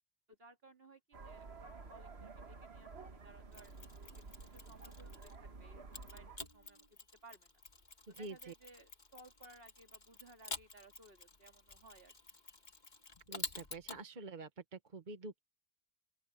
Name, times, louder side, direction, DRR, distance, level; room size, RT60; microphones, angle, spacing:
voice 1, 0.3-3.7 4.1-7.6 8.1-12.2, right 2 dB, 70° right, 2.6 m, -60 dB
sound 1, 1.1-6.4, right 4 dB, 90° right, 1.9 m, -52 dB
Mechanisms, 3.5-5.4 5.9-14.0, left 3 dB, 45° left, 1.7 m, -50 dB
voice 2, 8.2-8.5 13.3-15.4, right 3 dB, 50° right, 1.3 m, -47 dB
open air
omnidirectional pair, 1.0 m